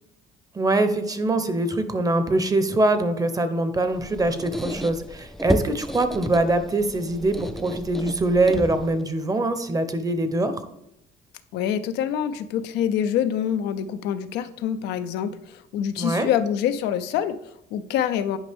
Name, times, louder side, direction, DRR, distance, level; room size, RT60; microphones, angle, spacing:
voice 1, 0.5-10.5 16.0-16.3, right 2 dB, 20° right, 9 dB, 0.8 m, -23 dB
Squeak, 3.8-9.1, equal, ahead, 0.3 m, -33 dB
voice 2, 11.5-18.4, left 9 dB, 85° left, 10 dB, 0.5 m, -26 dB
9.5 x 5.2 x 3.5 m, 0.77 s
cardioid pair, 110°, 17 cm